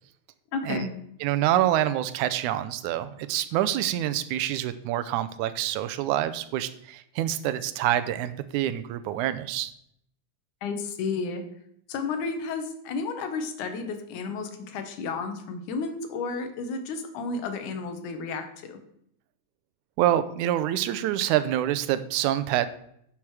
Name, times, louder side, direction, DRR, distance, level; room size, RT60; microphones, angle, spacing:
voice 1, 0.5-0.9 10.6-11.5 11.9-18.8, left 4 dB, 90° left, 7 dB, 2.6 m, -32 dB
voice 2, 1.2-9.7 20.0-22.7, right 12 dB, 90° right, 12 dB, 2.1 m, -26 dB
10.5 x 6.2 x 4.7 m, 0.72 s
omnidirectional pair, 3.4 m